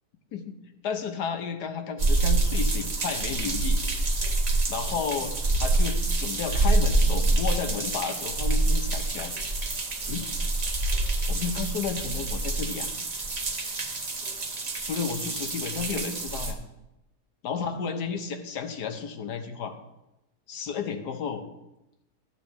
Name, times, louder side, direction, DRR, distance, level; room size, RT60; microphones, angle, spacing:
voice 1, 0.8-3.8 4.7-9.3 10.1-10.3 11.3-12.9 14.8-16.6 17.4-19.7 20.5-21.4, left 6 dB, 75° left, 7 dB, 1.5 m, -32 dB
sound 1, 2.0-16.5, right 2 dB, 30° right, 0.8 m, -26 dB
13.5 x 8.4 x 3.3 m, 0.93 s
omnidirectional pair, 1.8 m